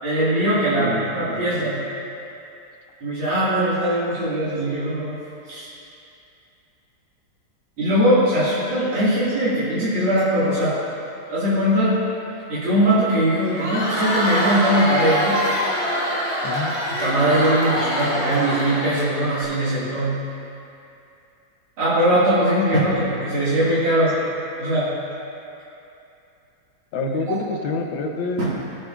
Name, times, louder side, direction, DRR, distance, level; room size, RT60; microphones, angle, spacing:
voice 1, 0.0-1.8 3.0-5.2 5.5-5.7 7.8-10.8 11.3-12.0 12.5-15.4 16.8-20.2 21.8-24.2 24.6-24.9 27.0-27.4 28.4-28.5, right 1 dB, 90° right, -12 dB, 3.1 m, -21 dB
voice 2, 0.5-1.5 16.4-16.7 26.9-28.4, left 3 dB, 75° left, 3 dB, 1.6 m, -28 dB
Crowd, 13.4-19.4, equal, 45° right, 2.8 m, -24 dB
18.0 x 8.3 x 2.5 m, 2.7 s
omnidirectional pair, 2.2 m